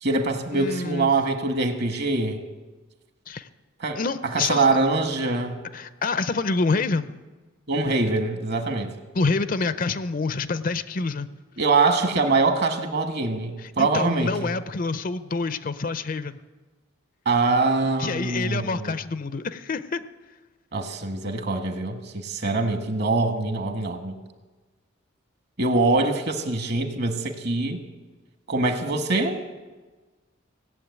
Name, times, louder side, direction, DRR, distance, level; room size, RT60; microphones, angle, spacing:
voice 1, 0.0-2.4 3.8-4.0 4.3-5.6 7.7-8.9 11.6-14.3 17.2-18.9 20.7-24.2 25.6-27.8 28.5-29.4, right 3 dB, 50° right, 7 dB, 1.4 m, -24 dB
voice 2, 0.5-1.1 3.3-3.5 4.0-4.8 5.7-7.1 9.1-11.3 13.6-16.4 18.0-20.0, left 3 dB, 40° left, 13 dB, 0.5 m, -27 dB
17.5 x 7.5 x 9.4 m, 1.3 s
head